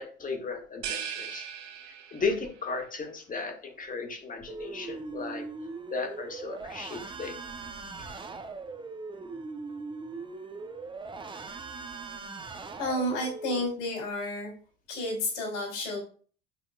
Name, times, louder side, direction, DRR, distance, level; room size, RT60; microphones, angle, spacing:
voice 1, 0.0-1.5 2.1-5.4 5.9-7.7, left 4 dB, 20° left, 4 dB, 1.9 m, -35 dB
sound 1, 0.8-2.5, right 8 dB, 65° right, 1.3 m, -38 dB
sound 2, 4.5-13.7, right 4 dB, 10° right, 0.8 m, -40 dB
voice 2, 12.8-14.5 14.9-16.0, left 1 dB, 60° left, -2 dB, 3.4 m, -31 dB
10.5 x 5.5 x 2.4 m, 0.41 s
figure-of-eight pair, 75°, 39 cm